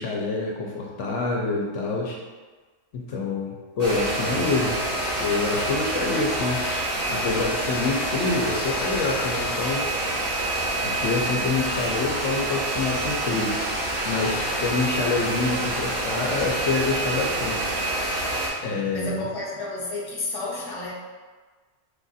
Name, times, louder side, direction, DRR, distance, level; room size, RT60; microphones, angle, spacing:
voice 1, 0.0-2.2 2.9-4.8 5.2-6.6 7.1-9.9 10.8-13.5 14.0-17.7 18.6-19.2, left 3 dB, 70° left, -1 dB, 1.0 m, -26 dB
sound 1, 3.8-18.5, right 1 dB, 85° right, 1.8 m, -27 dB
voice 2, 18.6-20.9, left 2 dB, 20° left, -6 dB, 0.9 m, -32 dB
5.0 x 2.5 x 4.0 m, 1.4 s
omnidirectional pair, 1.3 m